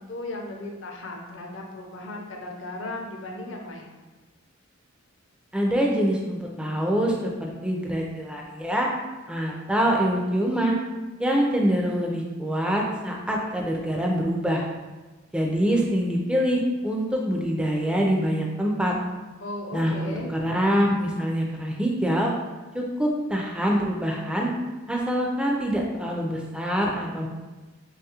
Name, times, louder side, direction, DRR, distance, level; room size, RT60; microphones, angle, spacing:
voice 1, 0.0-3.9 19.4-20.3, left 2 dB, 65° left, 1 dB, 0.5 m, -36 dB
voice 2, 5.5-8.9 9.3-10.8 11.2-14.7 15.3-18.9 19.7-22.3 22.7-24.5 24.9-27.3, equal, 5° right, -1 dB, 0.3 m, -25 dB
3.4 x 2.3 x 2.8 m, 1.2 s
head